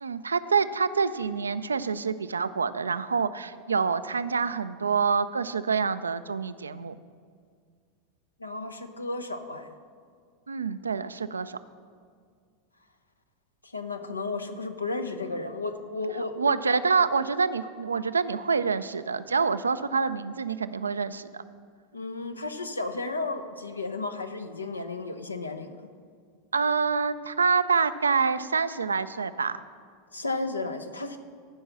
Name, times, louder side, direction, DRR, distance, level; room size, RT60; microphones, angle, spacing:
voice 1, 0.0-6.9 10.5-11.6 16.4-21.4 26.5-29.6, right 5 dB, 80° right, 13 dB, 0.4 m, -26 dB
voice 2, 8.4-9.7 13.6-16.5 21.9-25.7 30.1-31.2, left 3 dB, 85° left, 8 dB, 0.8 m, -33 dB
15.0 x 5.4 x 6.1 m, 2.1 s
figure-of-eight pair, 85°, 0 cm